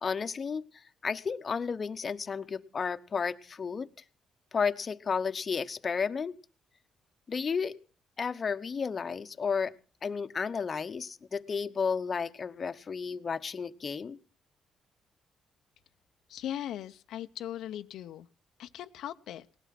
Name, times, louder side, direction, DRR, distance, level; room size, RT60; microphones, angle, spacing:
voice 1, 0.0-3.9 4.5-6.3 7.3-7.8 8.2-9.7 10.0-14.2, left 5 dB, 40° left, 10 dB, 1.0 m, -32 dB
voice 2, 16.3-18.3 18.6-19.5, left 11 dB, 80° left, 8 dB, 0.7 m, -39 dB
18.5 x 12.5 x 6.0 m, 0.39 s
cardioid pair, 90°, 0 cm